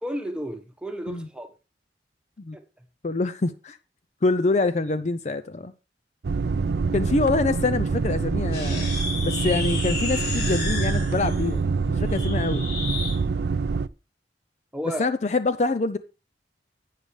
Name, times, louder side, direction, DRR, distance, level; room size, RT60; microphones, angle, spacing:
voice 1, 0.0-1.5 2.5-2.8 14.7-15.1, right 1 dB, 5° right, 1.1 m, -33 dB
voice 2, 3.0-3.8 4.2-5.7 6.9-9.0 9.2-12.6 15.0-16.0, left 3 dB, 40° left, 0.5 m, -25 dB
sound 1, 6.2-13.9, right 4 dB, 65° right, 0.4 m, -25 dB
sound 2, 8.5-13.2, left 3 dB, 60° left, 4.2 m, -33 dB
11.5 x 8.8 x 3.3 m
head